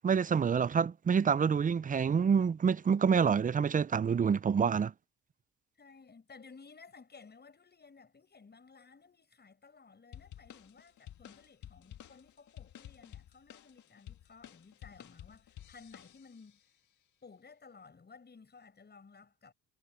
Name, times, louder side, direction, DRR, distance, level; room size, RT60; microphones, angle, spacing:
voice 1, 0.0-4.9, right 6 dB, 30° right, 0.5 m, -27 dB
voice 2, 5.8-16.6 17.2-19.5, left 4 dB, 35° left, 7.1 m, -56 dB
sound 1, 10.1-16.6, left 11 dB, 70° left, 1.9 m, -52 dB
cardioid pair, 90°, 30 cm